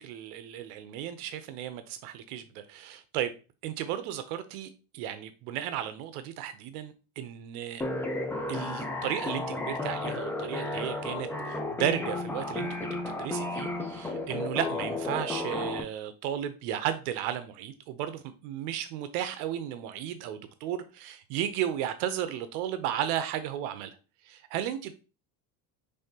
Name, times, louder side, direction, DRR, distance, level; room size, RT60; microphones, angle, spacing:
voice 1, 0.0-3.3 3.6-4.7 4.9-7.8 8.5-12.7 13.1-23.9 24.3-24.9, right 10 dB, 85° right, 0.7 m, -34 dB
sound 1, 7.8-15.8, left 2 dB, 5° left, 0.3 m, -33 dB
5.6 x 3.4 x 2.7 m
cardioid pair, 145°, 44 cm